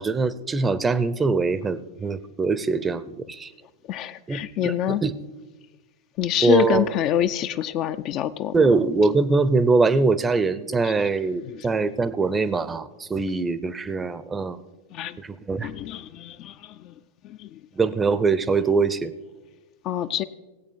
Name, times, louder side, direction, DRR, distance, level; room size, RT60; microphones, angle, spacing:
voice 1, 0.0-3.5 4.3-5.1 6.4-6.9 8.5-14.6 15.2-15.7 17.7-19.1, right 4 dB, 15° right, 15 dB, 0.6 m, -23 dB
voice 2, 3.9-5.0 6.2-8.5 10.8-10.9 11.5-11.7 14.9-15.2 15.6-16.9 17.2-17.6 19.8-20.2, left 11 dB, 40° left, 12 dB, 0.4 m, -26 dB
17.5 x 8.4 x 4.5 m, 1.1 s
figure-of-eight pair, 90°, 0 cm